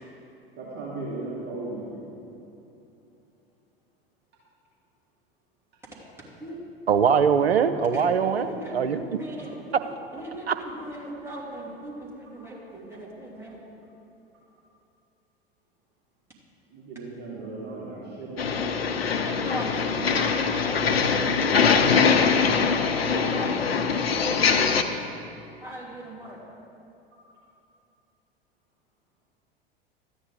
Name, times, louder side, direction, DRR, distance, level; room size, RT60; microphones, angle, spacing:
voice 1, 0.6-2.0 10.6-10.8 16.7-18.9 21.8-21.9, right 2 dB, 35° right, -7 dB, 2.9 m, -37 dB
voice 2, 6.9-9.0 10.5-10.6, right 7 dB, 80° right, 8 dB, 0.7 m, -22 dB
voice 3, 8.3-13.6 19.2-22.2 23.0-24.9 25.6-26.4, right 1 dB, 10° right, -5 dB, 2.9 m, -38 dB
sound 1, 18.4-24.8, left 5 dB, 75° left, 0.8 m, -22 dB
13.0 x 9.6 x 5.0 m, 2.8 s
figure-of-eight pair, 80°, 30 cm